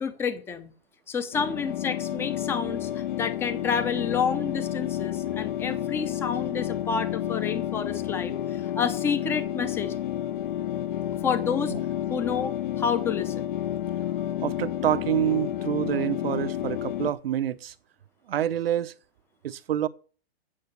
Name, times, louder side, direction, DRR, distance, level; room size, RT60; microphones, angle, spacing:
voice 1, 0.0-0.7 1.1-9.9 11.2-11.7 12.1-13.5, left 6 dB, 5° left, 0.6 m, -29 dB
sound 1, 1.3-17.1, left 12 dB, 50° left, 0.8 m, -30 dB
voice 2, 14.4-17.7 18.3-18.9 19.4-19.9, right 11 dB, 65° right, 0.8 m, -27 dB
8.7 x 6.8 x 8.0 m
hypercardioid pair, 150°, 32 cm